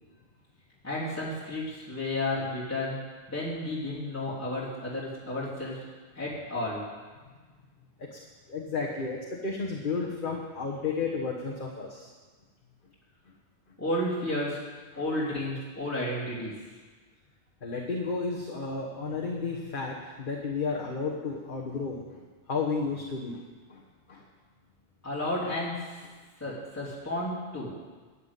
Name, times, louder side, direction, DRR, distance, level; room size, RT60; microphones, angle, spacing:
voice 1, 0.8-3.0 3.3-5.9 6.1-6.8 13.8-14.6 15.0-16.6 25.0-26.0 26.4-27.8, left 1 dB, 15° left, -8 dB, 3.5 m, -32 dB
voice 2, 8.5-12.1 17.6-22.2 22.5-23.4 23.7-23.8 24.1-24.2, left 4 dB, 50° left, -2 dB, 1.4 m, -32 dB
11.5 x 7.5 x 9.9 m, 1.4 s
omnidirectional pair, 1.1 m